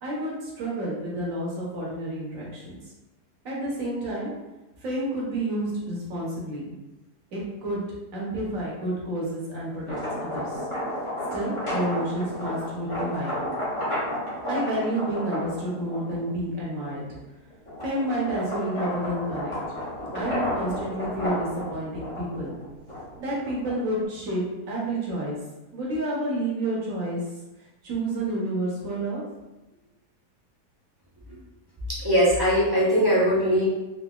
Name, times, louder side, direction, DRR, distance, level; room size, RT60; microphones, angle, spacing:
voice 1, 0.0-2.8 3.4-4.3 4.8-6.7 7.3-7.8 8.1-10.6 11.3-13.3 14.5-17.0 17.8-19.5 20.1-22.5 23.2-25.4 25.7-27.2 27.8-29.2, right 1 dB, 60° right, -4 dB, 1.3 m, -30 dB
sound 1, 9.7-16.3 16.8-24.0, left 1 dB, 25° left, 0.8 m, -32 dB
voice 2, 31.9-33.6, equal, 30° right, -8 dB, 0.4 m, -21 dB
3.8 x 2.7 x 2.3 m, 1.1 s
omnidirectional pair, 1.8 m